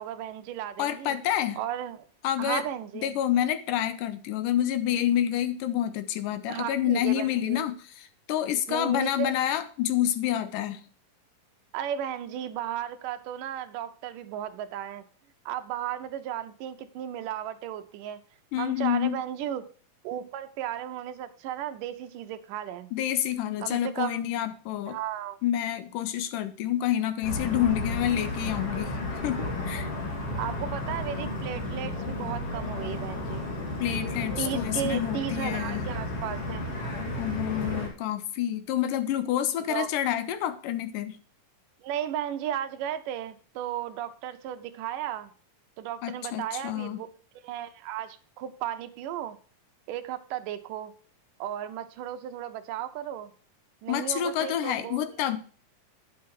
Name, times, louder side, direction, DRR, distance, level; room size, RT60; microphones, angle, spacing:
voice 1, 0.0-1.2 1.6-2.1 2.4-3.2 6.5-7.6 8.7-9.3 11.7-15.1 15.5-18.2 18.6-19.6 20.0-22.9 23.6-24.4 24.9-25.4 30.4-33.5 34.4-36.6 39.7-39.9 41.8-45.3 45.8-47.1 47.4-49.4 49.9-50.9 51.4-53.3 53.8-55.2, right 10 dB, 75° right, 9 dB, 2.3 m, -35 dB
voice 2, 0.8-1.6 2.2-2.6 3.0-7.8 8.3-10.8 18.5-19.2 22.9-25.0 25.4-28.9 29.2-29.9 33.8-35.9 37.2-41.1 46.0-47.0 53.9-55.4, left 11 dB, 80° left, 11 dB, 2.3 m, -28 dB
sound 1, 27.2-37.9, left 1 dB, 45° left, 3.1 m, -33 dB
9.5 x 7.4 x 4.6 m, 0.42 s
omnidirectional pair, 4.0 m